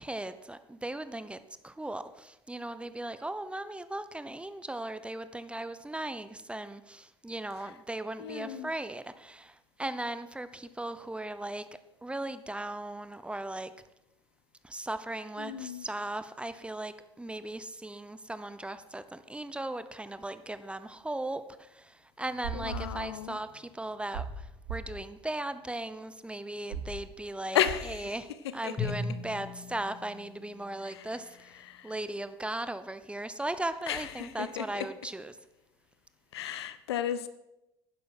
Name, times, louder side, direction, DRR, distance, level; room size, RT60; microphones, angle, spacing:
voice 1, 0.0-1.4 1.6-11.7 12.0-13.7 14.6-28.3 28.5-35.4, right 1 dB, 10° right, 12 dB, 0.8 m, -38 dB
voice 2, 8.2-8.7 15.4-15.9 22.5-23.4 27.5-28.1 28.6-28.9 30.8-31.1 31.7-31.9 33.9-34.9 36.3-37.3, left 10 dB, 70° left, 13 dB, 0.8 m, -33 dB
sound 1, 22.2-23.6 23.9-24.4 24.6-24.9 26.7-26.9 27.6-27.9, right 5 dB, 70° right, 2.6 m, -39 dB
Drum, 28.8-31.2, left 4 dB, 30° left, 3.6 m, -38 dB
11.5 x 10.5 x 6.1 m, 0.92 s
figure-of-eight pair, 65°, 14 cm